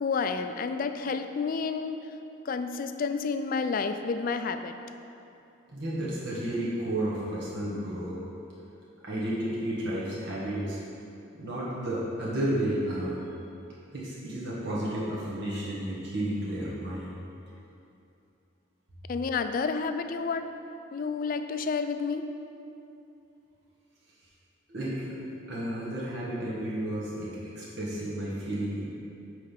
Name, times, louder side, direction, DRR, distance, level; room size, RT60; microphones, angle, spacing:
voice 1, 0.0-2.1 2.5-4.8 19.1-20.5 20.9-22.3, left 5 dB, 45° left, 8 dB, 0.3 m, -30 dB
voice 2, 5.7-8.1 9.0-10.8 11.3-13.3 13.9-17.2 24.7-28.8, right 1 dB, 55° right, -7 dB, 1.2 m, -32 dB
8.4 x 3.3 x 5.7 m, 2.8 s
head